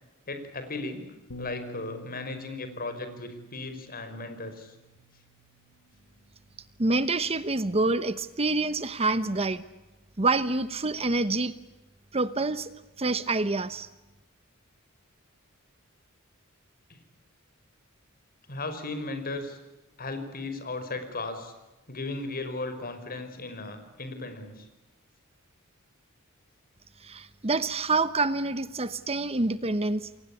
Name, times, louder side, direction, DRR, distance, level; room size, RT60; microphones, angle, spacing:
voice 1, 0.3-1.1 1.4-4.7 18.5-19.6 20.0-21.5 21.9-24.7, left 2 dB, 45° left, 8 dB, 5.3 m, -36 dB
Bass guitar, 1.3-5.8 6.6-7.6, right 2 dB, 85° left, 2.9 m, -49 dB
voice 2, 6.8-9.7 10.2-11.5 12.1-12.7 13.0-13.9 27.0-30.1, right 3 dB, 30° right, 14 dB, 1.0 m, -27 dB
29.0 x 22.5 x 8.5 m, 1.0 s
head